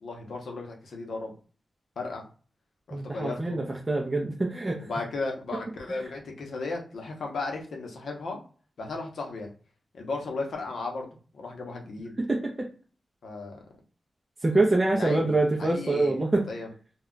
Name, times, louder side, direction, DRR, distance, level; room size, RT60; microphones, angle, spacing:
voice 1, 0.0-1.3 2.0-2.3 2.9-3.6 4.8-8.4 8.8-9.5 9.9-11.1 11.3-12.1 13.2-13.6 14.9-15.3 15.6-16.7, left 3 dB, 75° left, 1 dB, 0.7 m, -35 dB
voice 2, 2.9-4.9 5.9-6.0 12.2-12.7 14.4-16.5, right 2 dB, 20° right, -2 dB, 0.4 m, -25 dB
2.2 x 2.2 x 3.7 m, 0.39 s
wide cardioid pair, 150°, 0 cm